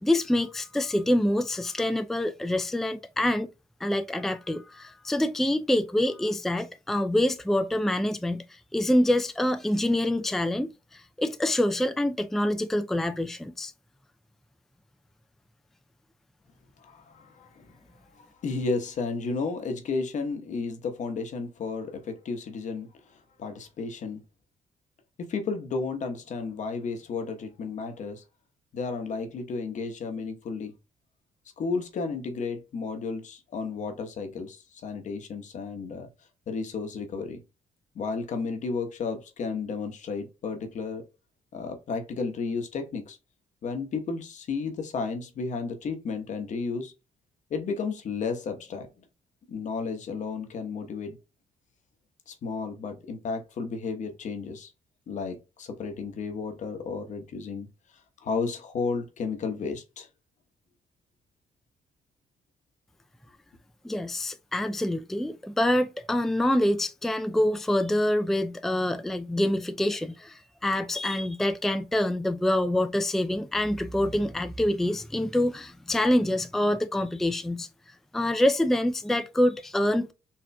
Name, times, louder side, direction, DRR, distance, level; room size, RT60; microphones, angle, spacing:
voice 1, 0.0-3.5 3.8-13.7 63.8-77.7 78.1-80.1, left 1 dB, ahead, 0.4 m, -26 dB
voice 2, 16.8-17.7 18.1-22.9 23.4-24.2 25.2-28.2 28.7-30.7 31.6-36.1 36.5-37.4 37.9-41.0 41.5-43.2 43.6-46.9 47.5-48.9 49.5-51.2 52.3-54.7 55.1-57.7 58.2-60.1, left 4 dB, 60° left, 1.0 m, -33 dB
4.3 x 2.9 x 2.2 m
cardioid pair, 75°, 14 cm